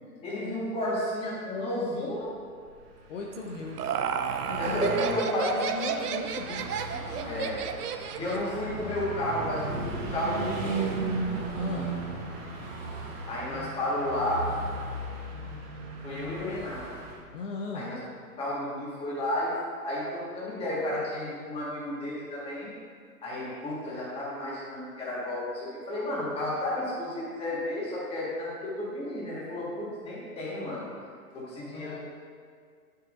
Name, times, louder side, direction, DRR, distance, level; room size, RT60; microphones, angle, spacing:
voice 1, 0.2-2.3 4.6-5.5 7.2-7.6 8.1-10.8 13.3-14.4 16.0-16.8 17.7-18.0 18.4-19.5 19.8-22.7 23.2-30.9 31.3-32.0, left 1 dB, 10° left, -7 dB, 1.6 m, -32 dB
Car passing by / Truck, 2.8-17.2, right 3 dB, 40° right, 1.2 m, -36 dB
voice 2, 3.1-3.9 4.4-7.5 11.5-12.0 17.3-17.9 31.6-32.0, left 3 dB, 50° left, 0 dB, 0.8 m, -37 dB
Laughter, 3.3-8.5, right 7 dB, 75° right, 0.6 m, -32 dB
8.5 x 6.8 x 2.6 m, 2.1 s
hypercardioid pair, 140°, 47 cm